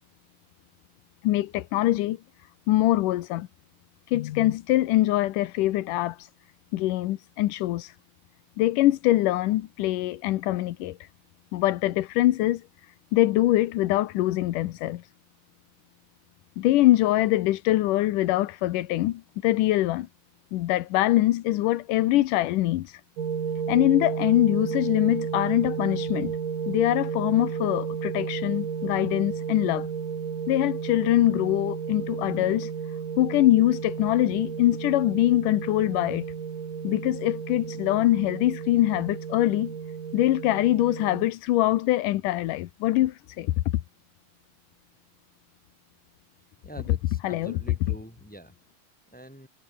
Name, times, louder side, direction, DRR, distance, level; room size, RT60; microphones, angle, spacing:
voice 1, 1.2-2.2 2.7-3.5 4.1-6.3 6.7-7.9 8.6-11.1 11.5-12.6 13.1-15.0 16.6-20.1 20.5-23.0 23.7-26.4 26.7-29.9 30.5-32.7 33.2-36.3 36.8-39.7 40.1-43.5 47.2-47.5, left 15 dB, 85° left, 2.5 m, -23 dB
sound 1, 23.2-41.3, right 7 dB, 85° right, 5.0 m, -33 dB
voice 2, 46.6-48.6 49.1-49.5, right 1 dB, 5° left, 4.3 m, -44 dB
omnidirectional pair, 3.6 m